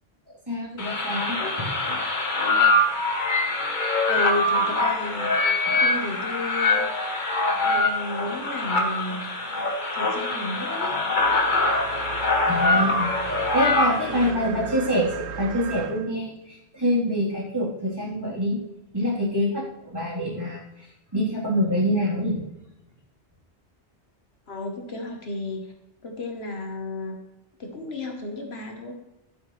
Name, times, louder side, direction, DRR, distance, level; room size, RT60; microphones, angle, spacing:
voice 1, 0.5-1.7 5.7-5.8 12.4-13.1 13.5-18.6 18.9-20.9 21.1-22.4, equal, 20° right, -7 dB, 3.7 m, -26 dB
sound 1, 0.8-14.3, left 2 dB, 45° left, 1.3 m, -24 dB
voice 2, 4.1-7.0 7.6-9.3 9.9-10.9 14.1-14.9 24.5-25.6 26.0-27.2 27.6-28.9, left 2 dB, 65° left, 3 dB, 1.4 m, -33 dB
sound 2, 11.2-16.1, right 8 dB, 80° right, 0.9 m, -35 dB
11.5 x 8.4 x 3.2 m, 0.91 s
omnidirectional pair, 1.2 m